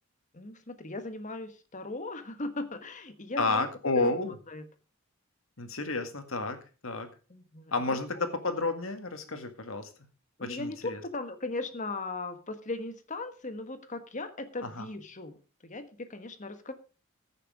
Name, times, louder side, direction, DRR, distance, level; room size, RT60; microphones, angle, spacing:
voice 1, 0.3-3.7 3.9-4.1 4.5-4.7 7.3-8.0 10.4-15.4 15.6-16.7, left 2 dB, 35° left, 9 dB, 1.4 m, -38 dB
voice 2, 3.4-4.4 5.6-7.1 7.7-9.9 10.4-11.0 14.6-14.9, left 3 dB, 70° left, 7 dB, 2.0 m, -31 dB
15.0 x 6.7 x 4.9 m, 0.34 s
head